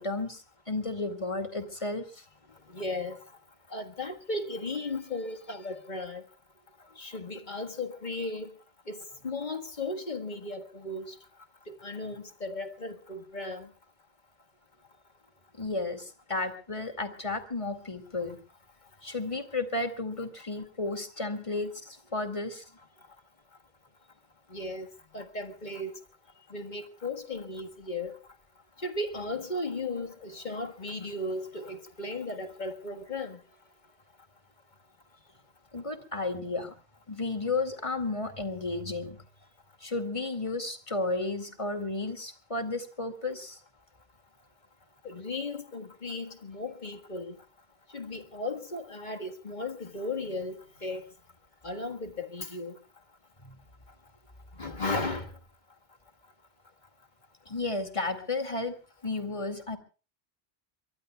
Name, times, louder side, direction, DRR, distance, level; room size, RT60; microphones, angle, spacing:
voice 1, 0.0-2.2 15.5-18.4 19.0-22.6 35.7-36.7 37.1-39.2 39.8-43.6 53.4-53.6 57.5-58.8 59.0-59.8, left 3 dB, 30° left, 2.3 m, -33 dB
voice 2, 2.7-3.2 3.7-6.2 7.0-8.5 8.9-11.2 11.7-13.7 24.5-24.9 25.1-26.0 26.5-28.2 28.8-33.4 45.0-47.4 47.9-51.0 51.6-52.8 54.6-55.3, left 2 dB, 45° left, 1.8 m, -36 dB
23.5 x 23.0 x 2.3 m
omnidirectional pair, 1.1 m